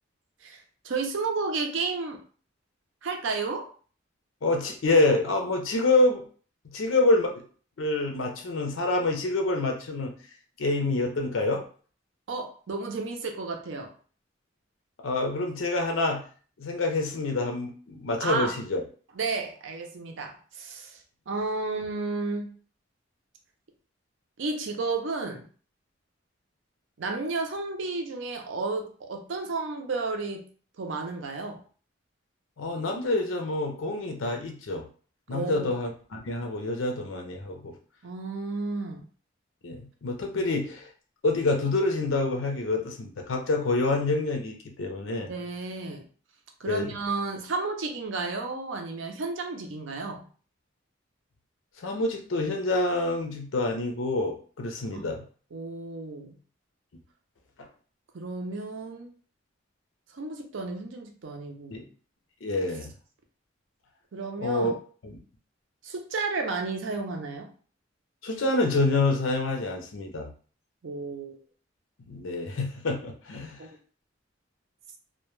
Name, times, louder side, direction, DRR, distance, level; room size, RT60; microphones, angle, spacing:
voice 1, 0.4-2.2 3.0-3.6 12.3-13.9 18.2-18.5 19.2-21.0 21.3-22.5 24.4-25.4 27.0-30.4 30.8-31.6 35.3-35.7 38.0-39.0 40.4-40.5 45.2-46.0 46.6-50.2 54.9-55.0 55.5-56.4 58.1-59.1 60.2-61.9 64.1-64.8 65.8-67.5 70.8-71.4 73.6-73.7, right 3 dB, 70° right, 3 dB, 0.5 m, -32 dB
voice 2, 4.4-6.2 6.7-7.4 7.8-10.1 10.6-11.6 15.0-16.2 16.6-18.8 32.6-34.8 35.3-37.7 39.6-40.9 41.2-45.3 46.6-46.9 51.8-55.2 57.6-57.7 61.7-61.8 62.4-62.9 64.4-64.8 65.0-65.2 68.2-70.3 72.1-73.6, left 2 dB, 85° left, 3 dB, 0.5 m, -27 dB
2.1 x 2.1 x 3.0 m, 0.42 s
head